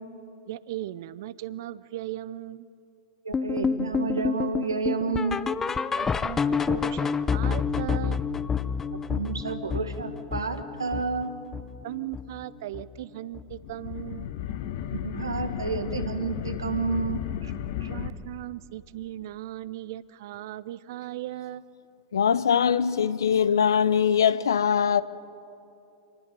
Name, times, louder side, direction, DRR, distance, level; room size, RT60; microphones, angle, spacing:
voice 1, 0.5-2.7 6.0-8.3 11.8-14.3 17.9-21.6, right 14 dB, 55° right, 0.7 m, -37 dB
sound 1, 3.3-12.4 12.7-13.0 13.3-13.4 14.0-14.1 14.6-14.7, left 6 dB, 15° left, 0.7 m, -29 dB
voice 2, 3.3-5.4 9.1-11.4 14.9-17.5 17.8-17.9, right 4 dB, 80° right, 1.8 m, -30 dB
sound 2, 13.5-18.1, left 10 dB, 55° left, 1.2 m, -34 dB
voice 3, 22.1-25.0, left 7 dB, 70° left, 0.7 m, -22 dB
26.5 x 20.0 x 6.9 m
figure-of-eight pair, 95°, 2 cm